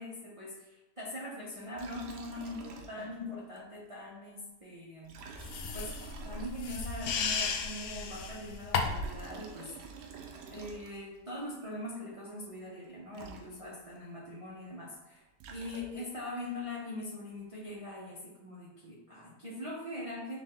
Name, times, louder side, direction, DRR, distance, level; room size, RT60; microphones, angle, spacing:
voice 1, 0.0-5.1 5.7-5.9 6.2-9.7 10.5-15.2 15.5-20.4, left 1 dB, 40° right, -7 dB, 0.4 m, -42 dB
Liquid, 1.7-3.3 3.6-3.7 5.0-6.9 8.6-11.2 12.8-12.9 13.1-14.0 15.1-16.2, right 5 dB, 80° right, 1.2 m, -49 dB
sound 1, 5.4-9.2, left 5 dB, 80° left, 0.6 m, -34 dB
4.5 x 2.8 x 3.5 m, 1.1 s
omnidirectional pair, 1.8 m